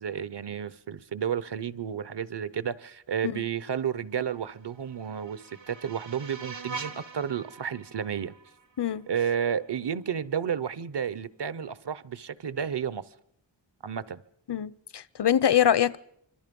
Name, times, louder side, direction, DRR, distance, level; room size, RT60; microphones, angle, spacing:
voice 1, 0.0-8.3 9.1-13.0 13.8-14.2, right 8 dB, 65° right, 0.9 m, -32 dB
sound 1, 4.5-9.5, right 5 dB, 90° right, 2.2 m, -44 dB
voice 2, 8.8-9.1 14.5-16.0, left 9 dB, 65° left, 0.8 m, -24 dB
25.5 x 25.5 x 5.4 m
wide cardioid pair, 85°, 45 cm